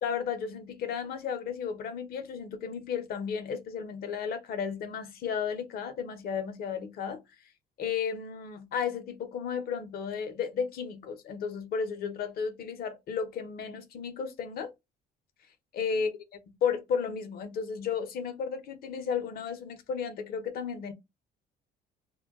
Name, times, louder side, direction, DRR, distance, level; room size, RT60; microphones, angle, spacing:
voice 1, 0.0-7.2 7.8-14.7 15.7-16.1 16.6-20.9, left 6 dB, 65° left, 0.7 m, -33 dB
2.2 x 2.2 x 3.5 m
cardioid pair, 110°, 17 cm